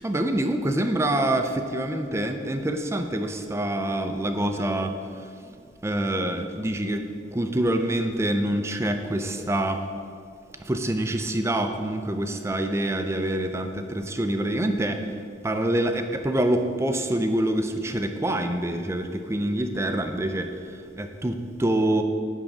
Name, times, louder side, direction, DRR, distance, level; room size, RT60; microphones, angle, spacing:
voice 1, 0.0-5.3 5.8-9.8 10.6-15.1 15.4-22.0, right 1 dB, 15° right, 6 dB, 0.5 m, -26 dB
10.5 x 3.7 x 7.1 m, 2.3 s
head